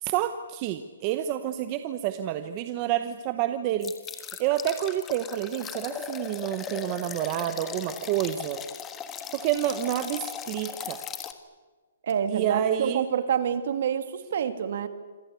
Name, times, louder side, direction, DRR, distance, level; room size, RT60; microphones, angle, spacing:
voice 1, 0.0-8.6 9.3-11.0 12.3-13.1, right 11 dB, 20° right, 10 dB, 0.9 m, -29 dB
sound 1, 3.8-11.3, left 8 dB, 10° left, 1.4 m, -38 dB
voice 2, 12.0-14.9, right 8 dB, 45° right, 10 dB, 2.4 m, -27 dB
27.0 x 24.5 x 8.4 m, 1.3 s
hypercardioid pair, 180°, 0 cm